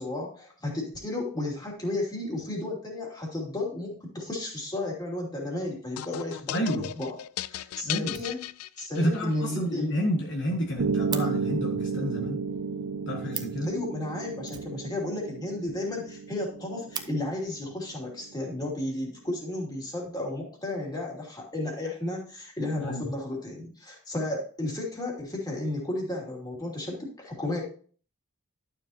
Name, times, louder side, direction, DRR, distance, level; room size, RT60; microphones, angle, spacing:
voice 1, 0.0-7.1 7.5-8.4 8.8-9.9 13.6-27.6, left 2 dB, 20° left, -2 dB, 2.7 m, -33 dB
sound 1, 6.0-9.3, left 12 dB, 80° left, 0.3 m, -36 dB
voice 2, 6.5-6.9 7.8-8.2 9.0-12.4 13.1-13.7 22.8-23.0, equal, 55° left, 1 dB, 1.4 m, -29 dB
Fire, 7.3-7.4 7.7-7.8 8.0-8.9 9.2-9.3 9.6-9.7 9.9-10.0 10.3-11.3 13.0-13.1 13.3-13.7 14.4-15.4 15.7-15.8 16.1-16.2 16.5-17.1 18.1-18.2 18.8-19.4, right 7 dB, 20° right, 0.6 m, -40 dB
Piano, 10.8-18.8, right 4 dB, 80° right, 0.8 m, -33 dB
11.5 x 7.1 x 2.8 m, 0.43 s
head